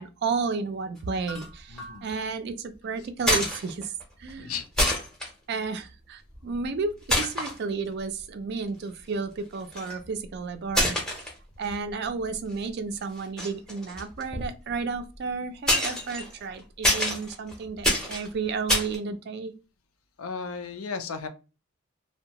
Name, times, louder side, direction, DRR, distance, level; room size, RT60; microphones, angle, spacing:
voice 1, 0.0-3.9 4.2-4.6 5.5-19.5, right 4 dB, 50° right, 9 dB, 0.3 m, -32 dB
sound 1, 1.3-1.5 1.8-2.1 3.2-4.0 4.3-4.4 4.8-5.3 6.3-6.7 7.1-7.6 8.2-8.3 9.5-10.1 10.7-11.9 12.3-12.6 13.2-15.1 15.7-19.0, left 1 dB, 5° left, 0.6 m, -27 dB
voice 2, 1.7-2.1 4.4-4.7 20.2-21.3, left 5 dB, 80° left, 7 dB, 0.5 m, -35 dB
2.7 x 2.1 x 2.8 m, 0.31 s
head